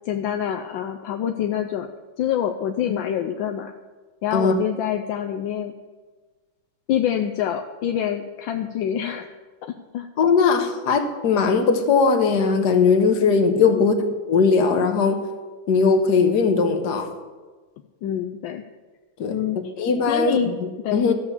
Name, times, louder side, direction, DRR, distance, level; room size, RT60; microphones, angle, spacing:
voice 1, 0.0-1.9 2.2-3.7 4.2-5.7 6.9-9.3 9.6-10.1 13.7-13.9 18.0-18.6 19.3-19.7 20.1-20.6 20.8-21.1, left 9 dB, 75° left, 1.4 m, -26 dB
voice 2, 10.2-13.9 14.3-15.2 15.7-17.1 19.2-19.4 19.8-21.1, left 5 dB, 60° left, 1.6 m, -19 dB
13.5 x 7.2 x 7.1 m
omnidirectional pair, 2.2 m